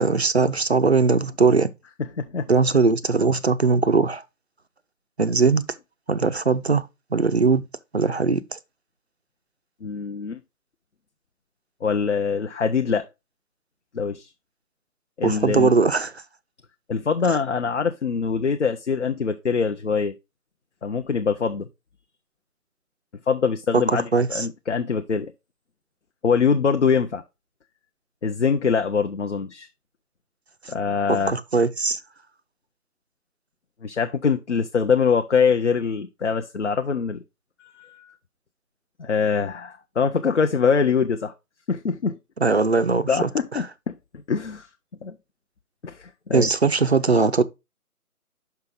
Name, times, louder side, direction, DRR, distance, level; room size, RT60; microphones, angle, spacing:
voice 1, 0.0-1.7 2.5-4.2 5.2-5.6 6.1-7.6 7.9-8.6 15.2-16.1 17.3-17.4 23.7-24.5 31.1-32.0 42.4-43.3 46.3-47.4, right 4 dB, 45° right, 0.5 m, -20 dB
voice 2, 9.8-10.4 11.8-13.1 13.9-14.3 15.2-15.7 16.9-20.2 20.8-21.7 23.3-25.3 26.2-27.2 28.2-29.7 30.7-31.4 33.8-37.2 37.6-38.1 39.0-41.3 41.7-42.2 43.1-44.0 44.3-44.7 45.0-45.2 45.8-46.5, left 5 dB, 50° left, 0.6 m, -23 dB
5.8 x 5.7 x 3.6 m
figure-of-eight pair, 150°, 45 cm